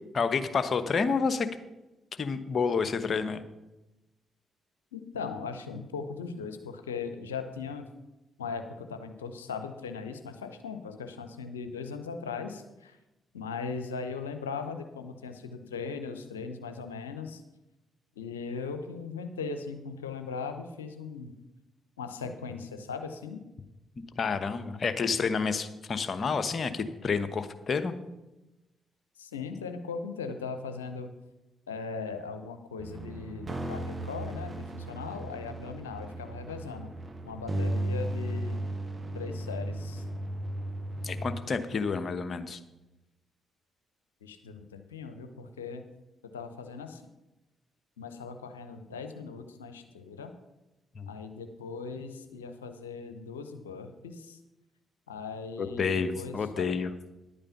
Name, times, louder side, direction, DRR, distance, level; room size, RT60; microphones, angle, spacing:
voice 1, 0.1-1.5 2.2-3.4 24.2-27.9 41.0-42.6 50.9-51.1 55.6-57.1, left 5 dB, 50° left, 10 dB, 1.0 m, -29 dB
voice 2, 4.9-7.9 8.4-13.0 13.3-17.4 18.2-21.3 22.0-23.4 29.2-31.1 31.7-36.9 37.2-38.6 39.1-40.0 44.2-45.9 46.3-47.0 48.0-50.3 51.1-54.4 55.1-56.7, left 5 dB, 90° left, 8 dB, 0.7 m, -39 dB
sound 1, 32.8-41.4, right 1 dB, 35° right, 1.5 m, -35 dB
11.0 x 8.8 x 5.8 m, 1.0 s
hypercardioid pair, 40°, 0 cm